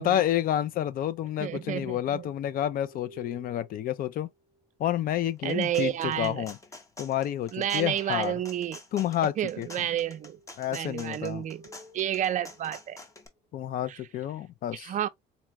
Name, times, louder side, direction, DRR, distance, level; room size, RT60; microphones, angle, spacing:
voice 1, 0.0-4.3 4.8-6.6 7.0-8.3 8.9-9.7 10.6-11.4 13.5-14.9, left 11 dB, 60° left, 0.4 m, -29 dB
sound 1, 1.0-4.7 9.1-13.6, right 1 dB, 35° left, 1.6 m, -55 dB
voice 2, 1.4-2.3 5.4-6.5 7.5-8.8 9.2-10.4 10.7-13.0 13.9-14.0 14.7-15.1, right 11 dB, 50° right, 0.5 m, -31 dB
sound 2, 5.3-13.3, left 2 dB, 20° left, 0.8 m, -48 dB
4.1 x 2.3 x 2.9 m
cardioid pair, 110°, 17 cm